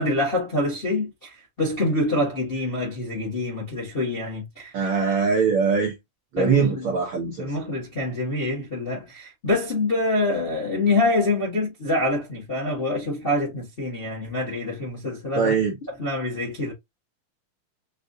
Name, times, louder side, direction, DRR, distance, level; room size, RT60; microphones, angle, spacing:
voice 1, 0.0-4.7 6.4-6.9 7.4-15.5 16.0-16.7, left 2 dB, 40° left, 0.7 m, -26 dB
voice 2, 4.7-5.9 6.3-7.5 15.3-15.7, right 5 dB, 85° right, 1.1 m, -22 dB
5.3 x 2.5 x 2.6 m
omnidirectional pair, 3.7 m